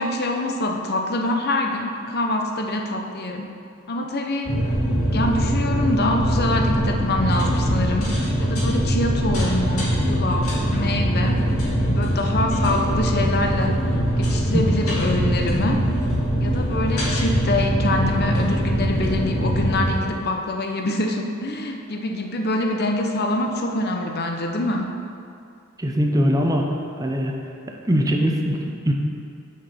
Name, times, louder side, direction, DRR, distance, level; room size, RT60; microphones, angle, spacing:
voice 1, 0.0-3.5 3.9-4.5 5.1-8.1 8.4-11.4 11.8-13.8 14.2-15.8 16.4-24.9, left 1 dB, 50° left, 3 dB, 0.8 m, -25 dB
sound 1, 4.4-19.9, equal, 85° left, 2.1 m, -22 dB
voice 2, 25.8-26.7 27.0-27.3 27.7-28.9, equal, 15° right, 1 dB, 0.7 m, -21 dB
6.4 x 5.9 x 7.0 m, 2.5 s
head